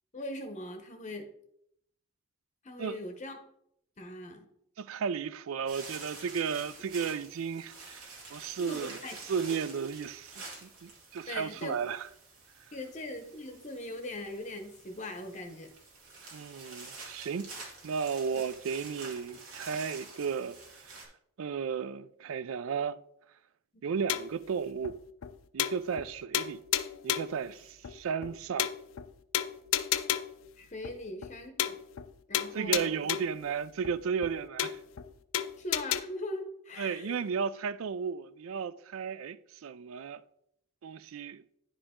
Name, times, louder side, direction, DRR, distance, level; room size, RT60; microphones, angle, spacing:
voice 1, 0.1-1.3 2.6-3.4 4.0-4.5 8.6-9.2 11.3-11.7 12.7-15.7 18.3-18.4 30.6-31.8 32.3-32.9 35.6-37.2, left 1 dB, 35° left, 0.7 m, -40 dB
voice 2, 4.8-12.1 16.3-17.5 17.8-20.6 20.8-21.0 21.4-23.0 23.8-25.0 25.5-26.6 27.0-28.7 32.5-34.8 36.8-40.2 40.8-41.4, right 6 dB, 70° right, 0.4 m, -34 dB
sound 1, 5.7-21.1, right 3 dB, 90° right, 2.3 m, -48 dB
sound 2, 24.1-24.4 24.8-24.9 25.2-25.3 25.6-26.1 26.3-27.4 27.8-27.9 28.2-28.3 28.6-29.1 29.3-30.4 30.8-30.9 31.2-31.3 31.6-32.1 32.3-33.4 33.8-33.9 34.2-34.3 34.6-35.1 35.3-36.0, left 11 dB, 65° left, 0.4 m, -32 dB
10.0 x 5.0 x 3.6 m
head